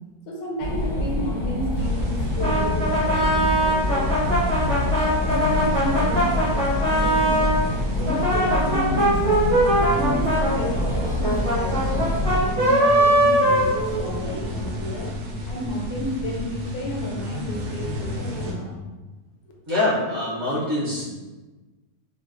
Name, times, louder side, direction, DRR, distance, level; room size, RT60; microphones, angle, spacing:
voice 1, 0.3-7.6 7.9-9.5 9.9-15.1 15.4-18.8, left 1 dB, 80° left, 0 dB, 1.1 m, -32 dB
sound 1, 0.6-12.5, left 1 dB, 65° left, 0.6 m, -26 dB
sound 2, 1.7-18.5, left 1 dB, 85° right, 1.1 m, -32 dB
Brass instrument, 2.4-7.6 8.0-14.4, right 1 dB, 35° right, 0.6 m, -21 dB
voice 2, 19.7-21.1, left 2 dB, 55° right, -9 dB, 1.1 m, -24 dB
3.1 x 2.2 x 2.4 m, 1.2 s
omnidirectional pair, 1.6 m